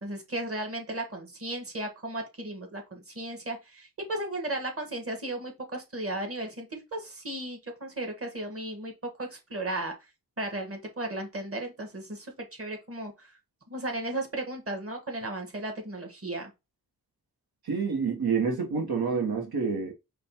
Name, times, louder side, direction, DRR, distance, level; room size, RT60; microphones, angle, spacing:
voice 1, 0.0-8.9 9.2-9.9 10.4-13.3 13.7-16.5, right 1 dB, 35° right, 1.6 m, -35 dB
voice 2, 17.6-19.9, right 5 dB, 75° right, 1.2 m, -28 dB
5.0 x 2.3 x 4.2 m
wide cardioid pair, 70°, 38 cm